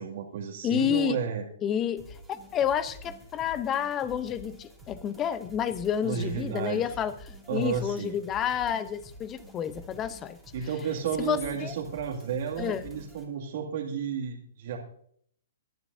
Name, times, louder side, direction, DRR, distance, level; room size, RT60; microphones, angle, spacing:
voice 1, 0.0-1.4 6.0-6.8 7.5-8.1 10.5-14.8, right 7 dB, 55° right, -2 dB, 2.3 m, -32 dB
voice 2, 0.6-1.2 1.6-2.0 2.5-7.1 7.5-10.4 11.2-11.7 12.6-12.8, left 9 dB, 20° left, 14 dB, 0.8 m, -29 dB
sound 1, 2.0-13.3, left 1 dB, ahead, 3.0 m, -49 dB
22.5 x 10.5 x 2.7 m, 0.64 s
hypercardioid pair, 150°, 0 cm